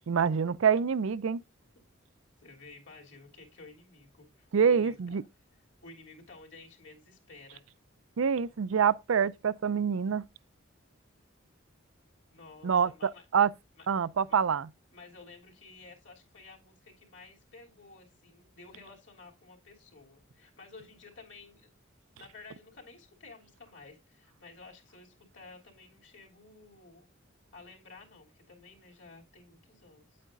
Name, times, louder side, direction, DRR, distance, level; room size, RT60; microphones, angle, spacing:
voice 1, 0.1-1.4 4.5-5.2 8.2-10.2 12.6-13.5 13.9-14.7, right 7 dB, 80° right, 0.4 m, -26 dB
voice 2, 2.4-5.2 5.8-7.6 12.3-13.2 13.8-13.9 14.3-14.4 14.9-21.7 22.1-27.1 27.5-30.2, left 3 dB, 60° left, 3.1 m, -53 dB
9.1 x 8.5 x 2.5 m
head